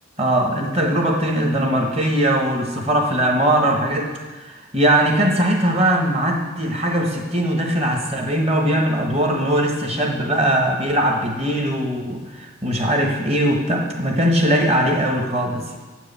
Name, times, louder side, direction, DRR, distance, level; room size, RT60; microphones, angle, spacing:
voice 1, 0.2-15.8, right 1 dB, 30° right, 2 dB, 1.1 m, -20 dB
8.1 x 4.7 x 6.8 m, 1.2 s
head